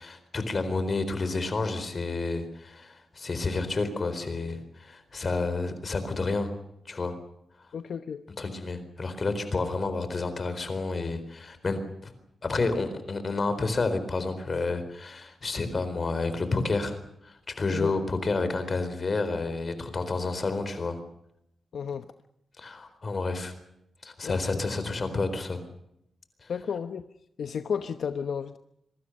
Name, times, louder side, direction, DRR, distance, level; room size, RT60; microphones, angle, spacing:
voice 1, 0.0-6.5 6.9-7.1 8.4-12.1 12.4-17.0 17.2-21.0 22.6-23.5 24.0-25.6 26.4-26.5, left 3 dB, 30° left, 10 dB, 4.1 m, -30 dB
voice 2, 7.7-8.2 17.7-17.9 21.7-22.1 24.2-24.4 26.5-27.0 27.4-28.6, left 7 dB, 65° left, 9 dB, 1.0 m, -32 dB
26.0 x 23.5 x 6.6 m, 0.78 s
wide cardioid pair, 180°, 0 cm